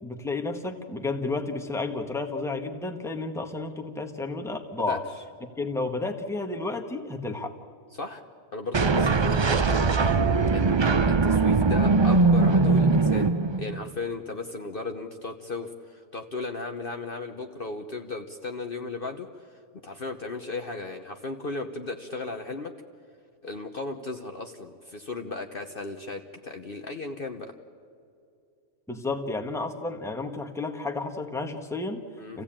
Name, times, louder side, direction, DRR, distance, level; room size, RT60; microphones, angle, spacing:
voice 1, 0.0-5.0 5.6-7.5 28.9-32.0 32.3-32.4, left 3 dB, ahead, 3 dB, 1.3 m, -31 dB
voice 2, 8.5-10.0 10.5-13.3 13.6-19.3 19.8-22.7 23.4-27.5 32.2-32.4, left 3 dB, 45° left, 4 dB, 1.2 m, -36 dB
sound 1, 8.7-13.9, right 3 dB, 40° right, 0.3 m, -21 dB
28.0 x 16.0 x 8.8 m, 2.4 s
omnidirectional pair, 1.4 m